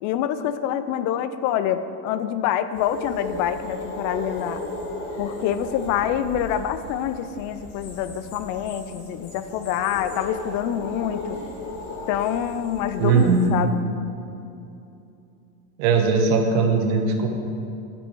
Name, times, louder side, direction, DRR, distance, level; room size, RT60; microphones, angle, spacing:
voice 1, 0.0-4.6 5.2-11.4 12.1-13.7, left 10 dB, 45° left, 12 dB, 0.5 m, -26 dB
sound 1, 2.7-13.5, left 2 dB, 60° left, 1.9 m, -35 dB
voice 2, 13.0-13.7 15.8-17.3, right 4 dB, 60° right, 4 dB, 1.3 m, -19 dB
10.0 x 6.1 x 4.5 m, 2.7 s
supercardioid pair, 130°, 46 cm